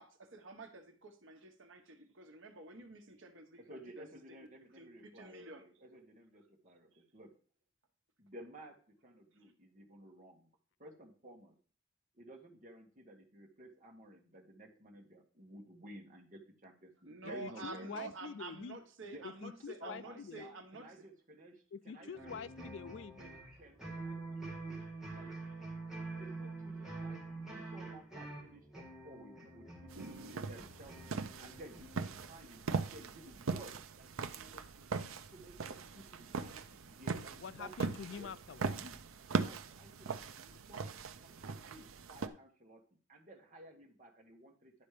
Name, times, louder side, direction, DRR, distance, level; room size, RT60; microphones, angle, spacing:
voice 1, 0.0-4.0 4.8-4.9 5.1-5.6 17.0-20.9 22.0-22.4, right 3 dB, 70° right, 1.3 m, -49 dB
voice 2, 3.6-7.3 8.2-10.5 10.8-11.5 12.1-18.1 19.0-19.3 19.8-21.6 21.8-22.4 23.2-24.8 25.1-25.3 26.0-35.0 35.3-38.3 38.8-39.0 39.3-42.8 43.1-44.7, right 1 dB, 40° right, 1.6 m, -55 dB
voice 3, 17.2-18.8 19.4-20.5 21.7-23.2 37.4-38.7, left 6 dB, 65° left, 0.4 m, -46 dB
sound 1, 22.1-32.3, right 3 dB, ahead, 2.0 m, -46 dB
sound 2, 29.9-42.3, right 4 dB, 85° right, 0.6 m, -40 dB
10.5 x 4.2 x 4.9 m
head